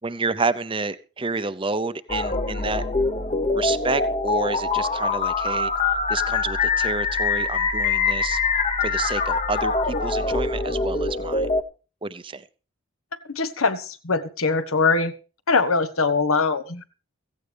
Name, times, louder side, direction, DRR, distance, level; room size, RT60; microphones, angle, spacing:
voice 1, 0.0-2.8 3.5-5.7 6.1-8.4 8.8-11.5 12.0-12.4, right 3 dB, 25° right, 14 dB, 0.6 m, -29 dB
sound 1, 2.1-11.6, left 4 dB, 30° left, 0.9 m, -24 dB
voice 2, 13.3-15.1 15.5-16.9, left 4 dB, 80° left, 12 dB, 1.2 m, -22 dB
16.0 x 15.5 x 3.4 m, 0.35 s
head